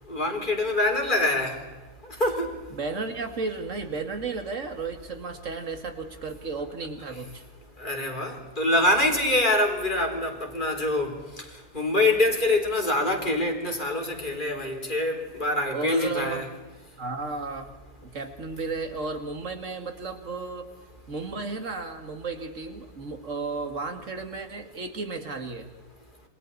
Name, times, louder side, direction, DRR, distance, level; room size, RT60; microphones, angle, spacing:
voice 1, 0.1-1.6 2.2-2.5 7.8-11.1 11.7-16.5, left 1 dB, 30° left, 2 dB, 4.1 m, -25 dB
voice 2, 2.7-7.4 15.7-16.4 17.0-17.7 18.1-20.7 21.1-25.7, right 4 dB, 50° right, 6 dB, 2.6 m, -33 dB
28.5 x 26.0 x 4.2 m, 1.3 s
omnidirectional pair, 1.7 m